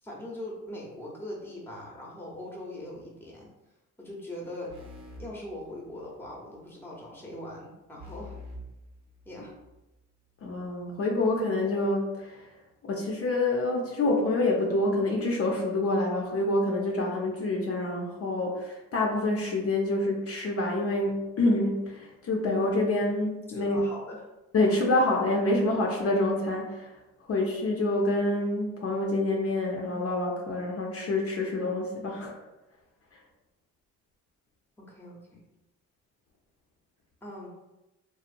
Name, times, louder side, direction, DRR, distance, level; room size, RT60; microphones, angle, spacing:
voice 1, 0.0-3.5 4.0-4.7 5.2-8.4 9.2-9.5 23.6-24.2 34.8-35.4 37.2-37.5, left 1 dB, 5° left, -3 dB, 0.7 m, -41 dB
sound 1, 4.7-6.3 8.0-9.8, left 1 dB, 85° right, 0.8 m, -46 dB
voice 2, 10.4-12.5 12.8-23.8 24.5-26.9 27.3-32.3, left 2 dB, 50° left, -1 dB, 0.6 m, -27 dB
2.9 x 2.0 x 2.5 m, 1.0 s
cardioid pair, 90°, 30 cm